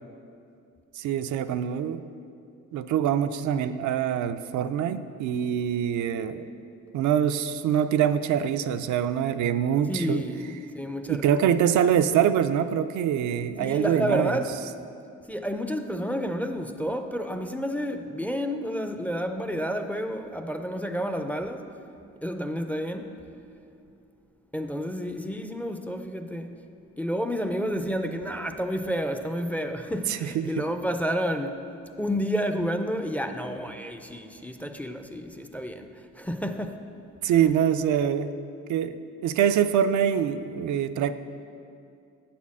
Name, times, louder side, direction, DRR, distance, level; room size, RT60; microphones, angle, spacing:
voice 1, 1.0-2.0 2.7-6.5 6.9-10.2 11.1-14.4 30.1-30.5 37.2-38.3 38.7-39.0 39.2-41.1, right 9 dB, 70° right, 10 dB, 0.5 m, -24 dB
voice 2, 9.9-10.5 10.7-11.4 13.6-14.5 15.3-21.7 22.2-23.1 24.5-26.6 27.0-31.6 32.0-36.8, equal, 5° left, 7 dB, 0.4 m, -30 dB
8.9 x 4.3 x 7.2 m, 2.5 s
cardioid pair, 90°, 30 cm